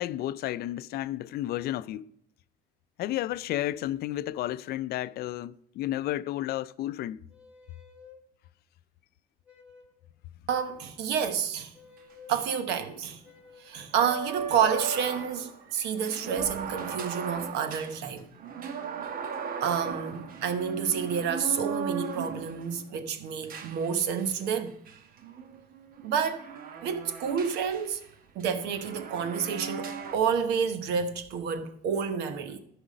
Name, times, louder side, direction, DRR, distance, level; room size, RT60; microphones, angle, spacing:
voice 1, 0.0-2.1 3.0-7.2, left 14 dB, 70° left, 0.4 m, -32 dB
sound 1, 7.3-8.2 9.4-10.0 11.7-12.4 13.2-13.9, left 6 dB, 5° right, 2.0 m, -53 dB
voice 2, 10.5-11.7 12.3-13.2 13.6-18.3 19.6-24.8 26.0-26.5 26.8-28.0 28.3-32.6, right 7 dB, 85° right, 1.1 m, -29 dB
sound 2, 11.7-11.8 12.0-12.1 13.9-22.9 23.5-24.4 24.9-28.1 28.4-30.2, right 6 dB, 60° right, 1.0 m, -37 dB
12.5 x 5.0 x 5.2 m
cardioid pair, 110°, 17 cm